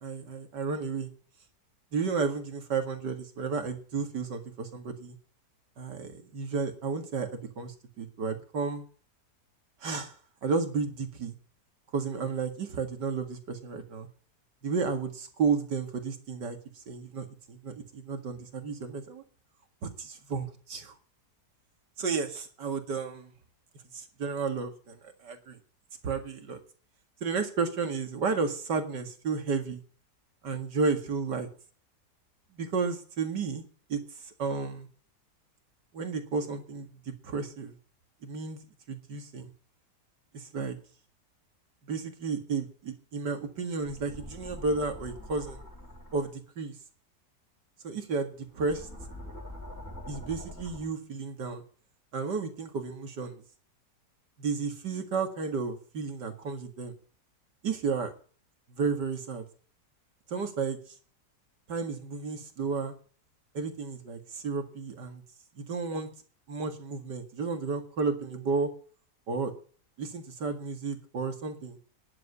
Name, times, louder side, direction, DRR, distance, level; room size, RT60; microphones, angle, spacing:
voice 1, 0.0-1.1 1.9-5.2 5.8-8.8 9.8-10.1 10.4-11.3 11.9-14.1 14.6-16.6 16.9-19.2 20.0-21.0 22.0-23.3 23.9-25.6 26.0-26.6 27.2-29.8 30.4-31.5 32.5-33.6 33.9-34.0 34.4-34.9 35.9-37.7 38.2-38.6 38.9-39.5 40.3-40.8 41.9-45.6 46.1-46.7 47.8-48.9 50.1-51.6 52.1-53.4 54.4-56.9 57.6-58.1 58.8-59.4 60.3-60.8 61.7-62.9 63.5-65.2 65.6-66.1 66.5-68.7 69.3-69.5 70.0-71.8, right 4 dB, 85° right, 6 dB, 2.6 m, -32 dB
sound 1, 43.8-46.3 48.3-50.8, equal, 10° left, 4.2 m, -44 dB
11.0 x 7.6 x 9.6 m, 0.41 s
omnidirectional pair, 1.8 m